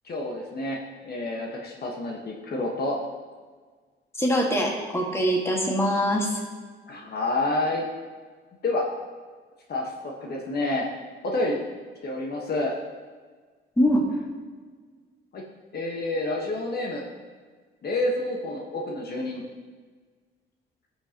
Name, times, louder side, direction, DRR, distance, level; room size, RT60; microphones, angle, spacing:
voice 1, 0.0-0.8 1.0-3.0 6.9-7.8 8.6-8.9 9.7-10.9 11.2-11.6 12.0-12.8 15.3-15.4 15.7-17.0 17.8-19.4, left 2 dB, 55° left, -1 dB, 1.3 m, -28 dB
voice 2, 4.2-6.4 13.8-14.1, equal, 15° left, 0 dB, 1.7 m, -23 dB
14.5 x 6.1 x 2.9 m, 1.5 s
cardioid pair, 90°, 20 cm